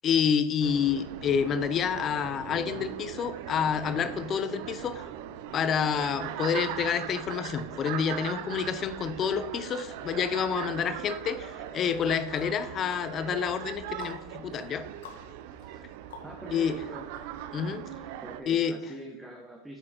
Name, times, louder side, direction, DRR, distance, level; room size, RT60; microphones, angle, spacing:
voice 1, 0.0-5.0 5.5-14.9 16.5-16.7 17.5-17.9 18.5-18.8, left 7 dB, 30° left, 12 dB, 0.6 m, -28 dB
sound 1, 0.6-18.4, right 11 dB, 55° right, 0.5 m, -40 dB
sound 2, 11.3-16.7 17.1-17.2, left 4 dB, 90° left, 1.9 m, -50 dB
voice 2, 16.2-17.1 18.2-19.8, right 1 dB, 5° right, 1 dB, 0.9 m, -43 dB
8.7 x 5.2 x 4.2 m, 1.0 s
supercardioid pair, 145°, 0 cm